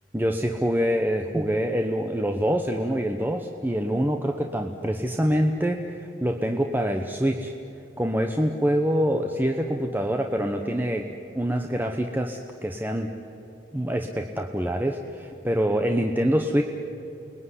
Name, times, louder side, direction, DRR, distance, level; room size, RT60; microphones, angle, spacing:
voice 1, 0.1-7.5 8.0-11.1 11.3-13.1 13.7-16.6, equal, 10° right, 3 dB, 1.0 m, -25 dB
29.5 x 20.5 x 9.9 m, 2.9 s
head